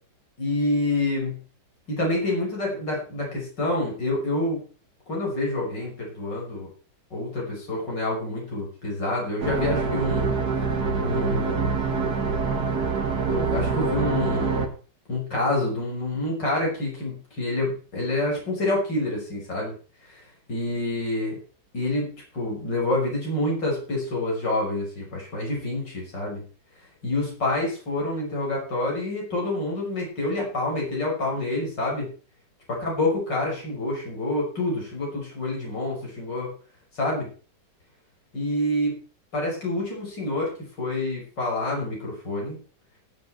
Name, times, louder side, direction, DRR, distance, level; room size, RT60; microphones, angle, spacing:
voice 1, 0.4-1.4 1.9-4.6 5.1-6.7 7.1-10.4 11.0-11.8 13.3-14.7 15.1-19.7 20.0-21.4 21.7-26.4 27.0-32.1 32.7-36.5 36.9-37.3 38.3-39.0 39.3-42.6, left 2 dB, 80° left, -2 dB, 6.6 m, -27 dB
sound 1, 9.4-14.7, right 4 dB, 60° right, 2.5 m, -25 dB
18.5 x 7.9 x 4.5 m, 0.38 s
omnidirectional pair, 1.9 m